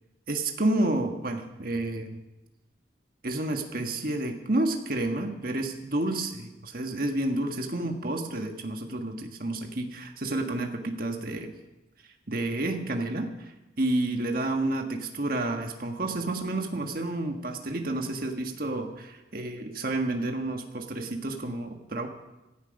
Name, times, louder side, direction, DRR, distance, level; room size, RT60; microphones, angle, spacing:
voice 1, 0.3-2.2 3.2-11.5 12.0-22.1, right 2 dB, 45° right, 4 dB, 1.5 m, -30 dB
17.5 x 12.5 x 5.4 m, 1.0 s
head